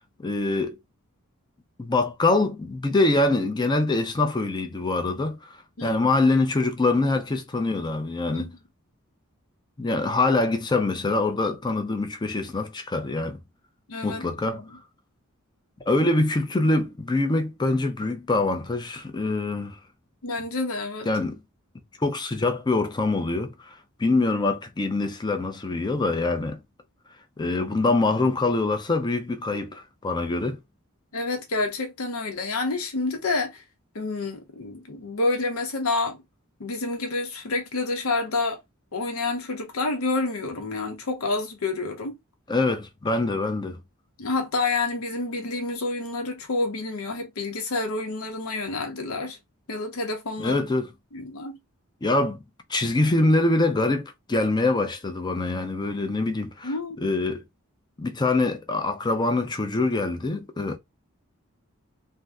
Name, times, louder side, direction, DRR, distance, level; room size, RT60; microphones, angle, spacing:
voice 1, 0.2-0.8 1.8-5.5 5.8-8.5 9.8-13.4 14.0-14.8 15.9-19.8 21.1-21.4 22.0-23.7 24.0-26.6 27.4-30.6 42.5-43.8 50.4-50.9 52.0-52.4 52.7-57.4 58.0-60.8, left 2 dB, 20° left, 0.5 m, -24 dB
voice 2, 5.8-6.1 8.3-8.5 13.9-14.2 14.5-14.6 20.2-21.1 28.2-28.3 31.1-33.6 33.9-36.2 36.6-38.6 38.9-42.2 44.2-49.4 49.7-50.6 51.1-51.6 56.6-57.0, left 3 dB, 80° left, 0.7 m, -28 dB
2.7 x 2.1 x 3.4 m
head